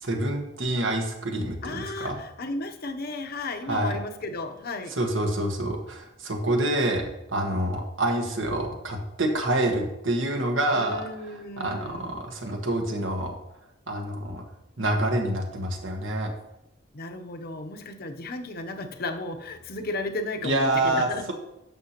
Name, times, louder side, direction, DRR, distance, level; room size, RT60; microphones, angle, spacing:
voice 1, 0.0-2.2 3.7-4.0 4.9-13.3 13.9-14.4 14.8-16.3 20.4-21.3, right 1 dB, 90° right, 2 dB, 1.5 m, -27 dB
voice 2, 1.6-5.0 10.7-12.1 16.9-21.3, left 2 dB, 55° left, 6 dB, 0.8 m, -34 dB
11.0 x 6.8 x 3.0 m, 0.90 s
head